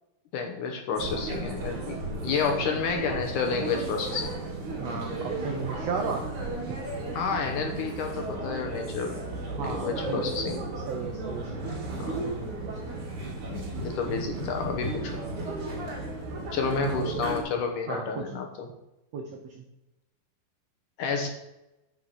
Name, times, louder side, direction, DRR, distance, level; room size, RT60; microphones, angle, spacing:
voice 1, 0.3-4.3 7.1-9.2 9.6-10.6 12.0-12.1 13.5-15.1 16.5-18.7 21.0-21.3, left 5 dB, 70° left, 3 dB, 2.2 m, -30 dB
sound 1, 0.9-17.4, right 2 dB, 55° right, 3.2 m, -34 dB
voice 2, 4.8-6.2 9.6-10.6 10.9-11.6 12.1-12.7 16.7-17.4 17.9-18.2 19.1-19.2 19.5-19.6, right 5 dB, 85° right, 2 dB, 1.4 m, -35 dB
9.3 x 5.7 x 6.3 m, 0.94 s
omnidirectional pair, 4.4 m